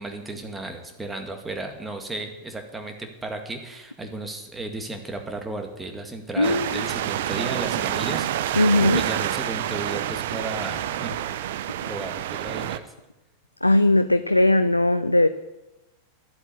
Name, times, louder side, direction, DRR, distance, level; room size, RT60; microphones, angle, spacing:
voice 1, 0.0-11.2 11.9-12.8, right 2 dB, 10° right, 4 dB, 2.1 m, -34 dB
voice 2, 6.4-6.8 8.6-9.0 13.6-15.3, left 1 dB, 85° left, 12 dB, 0.5 m, -19 dB
sound 1, 6.4-12.8, right 11 dB, 55° right, 0.7 m, -28 dB
11.5 x 8.2 x 8.2 m, 0.98 s
figure-of-eight pair, 90°, 0 cm